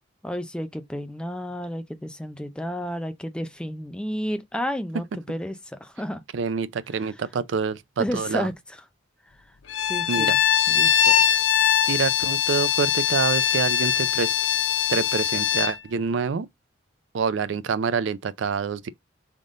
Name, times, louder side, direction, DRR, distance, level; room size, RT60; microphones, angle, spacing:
voice 1, 0.2-5.6 5.8-6.2 8.0-8.5 9.8-10.4 10.7-11.1, equal, 5° left, 0.4 m, -31 dB
voice 2, 6.3-8.5 10.1-10.4 11.9-14.4 14.9-16.5 17.1-18.9, right 5 dB, 75° right, 0.4 m, -26 dB
Bowed string instrument, 9.7-15.8, left 9 dB, 70° left, 0.5 m, -22 dB
3.8 x 3.6 x 3.7 m
head